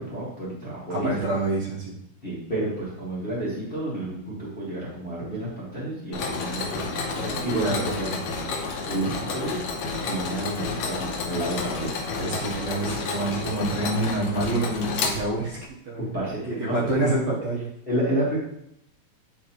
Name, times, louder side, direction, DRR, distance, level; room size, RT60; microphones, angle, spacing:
voice 1, 0.0-1.1 2.2-7.9 8.8-9.6 10.0-11.9 16.0-17.2 17.9-18.4, right 1 dB, 60° left, -9 dB, 0.6 m, -30 dB
voice 2, 0.9-1.9 7.6-8.2 12.2-16.0 16.3-17.7, right 2 dB, 65° right, -5 dB, 1.9 m, -27 dB
Mechanisms, 6.1-15.7, left 4 dB, 80° left, 1.5 m, -30 dB
9.5 x 3.9 x 3.0 m, 0.77 s
omnidirectional pair, 4.2 m